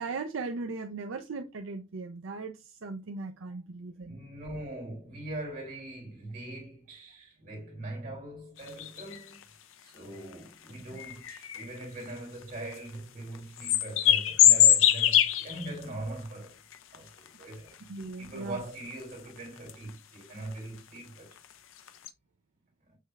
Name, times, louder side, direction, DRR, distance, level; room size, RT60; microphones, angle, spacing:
voice 1, 0.0-4.2 17.9-18.6, right 3 dB, 75° right, 0.5 m, -38 dB
voice 2, 4.0-9.4 9.8-16.6 16.9-17.9 18.2-21.4, right 1 dB, 40° right, 2.5 m, -41 dB
sound 1, 8.6-9.4 10.3-10.4 11.0-12.4 12.7-12.9 13.3-15.8 16.2-16.3 16.7-17.5 18.0-18.6 18.9-19.0 19.6-19.9 20.5-20.6 20.8-20.9 21.3-21.5 21.9-22.1, left 11 dB, 75° left, 0.5 m, -23 dB
6.4 x 3.3 x 2.3 m
head